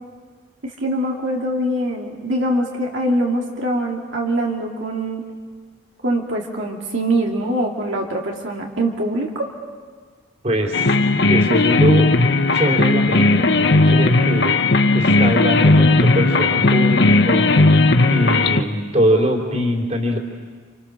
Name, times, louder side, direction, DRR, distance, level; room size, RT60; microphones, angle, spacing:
voice 1, 0.6-5.2 6.0-9.5, right 1 dB, 65° right, -1 dB, 2.5 m, -23 dB
voice 2, 10.4-11.0 11.3-12.1 12.5-14.6 14.9-17.5 18.1-20.2, equal, 35° right, 1 dB, 3.5 m, -22 dB
sound 1, 10.7-18.6, left 2 dB, 55° left, 1.2 m, -16 dB
30.0 x 28.0 x 6.5 m, 1.5 s
head